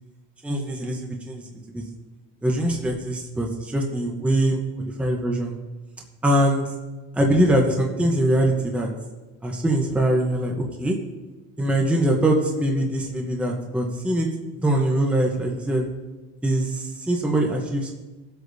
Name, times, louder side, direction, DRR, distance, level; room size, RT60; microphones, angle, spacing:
voice 1, 0.4-1.8 2.4-4.6 5.0-5.5 6.2-6.7 7.1-8.9 9.4-11.0 11.6-14.3 14.6-15.9 16.4-17.9, right 1 dB, 5° right, 0 dB, 0.9 m, -22 dB
20.0 x 8.0 x 2.7 m, 1.2 s
cardioid pair, 165°, 35 cm